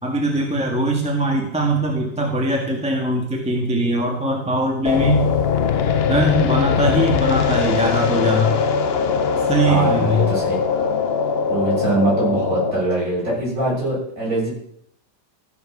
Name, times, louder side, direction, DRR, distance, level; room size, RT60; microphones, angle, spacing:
voice 1, 0.0-5.2 6.1-8.6 9.5-10.2, right 1 dB, 5° right, 1 dB, 1.5 m, -21 dB
sound 1, 4.8-12.7, left 6 dB, 55° left, 0.7 m, -20 dB
voice 2, 9.6-11.0 11.5-14.5, right 2 dB, 50° right, -6 dB, 7.3 m, -23 dB
14.0 x 7.3 x 6.1 m, 0.71 s
omnidirectional pair, 1.9 m